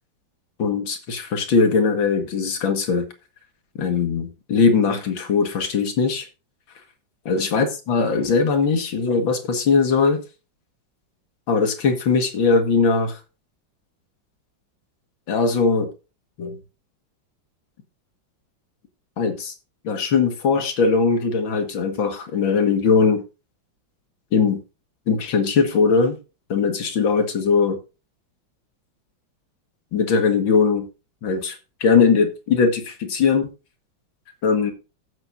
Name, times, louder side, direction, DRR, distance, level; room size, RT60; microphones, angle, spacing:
voice 1, 0.6-3.1 3.8-6.3 7.3-10.2 11.5-13.2 15.3-15.9 16.4-16.6 19.2-19.5 19.8-23.2 24.3-24.6 25.1-26.2 26.5-27.8 29.9-30.9 31.2-31.6 31.8-33.5 34.4-34.7, left 5 dB, 80° left, 5 dB, 2.5 m, -20 dB
15.0 x 7.6 x 2.6 m, 0.30 s
omnidirectional pair, 2.1 m